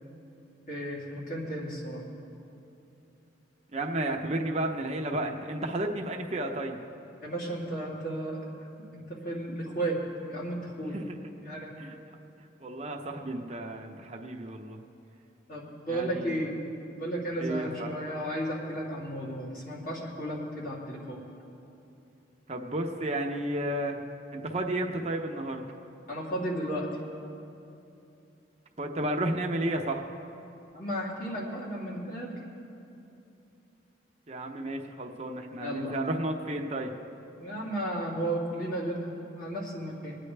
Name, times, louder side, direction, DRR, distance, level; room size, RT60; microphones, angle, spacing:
voice 1, 0.7-2.0 7.2-8.4 8.8-10.0 10.3-11.0 11.4-11.7 15.5-16.6 16.9-21.2 26.1-26.9 30.7-32.3 35.6-36.0 37.4-40.2, right 1 dB, 50° left, -5 dB, 2.9 m, -34 dB
voice 2, 3.7-6.8 10.9-11.3 11.8-12.0 12.6-14.8 15.9-16.5 17.4-17.9 22.5-24.0 24.3-25.6 28.8-30.0 34.3-36.9, right 1 dB, 35° right, 2 dB, 0.8 m, -32 dB
26.0 x 9.6 x 3.3 m, 2.8 s
head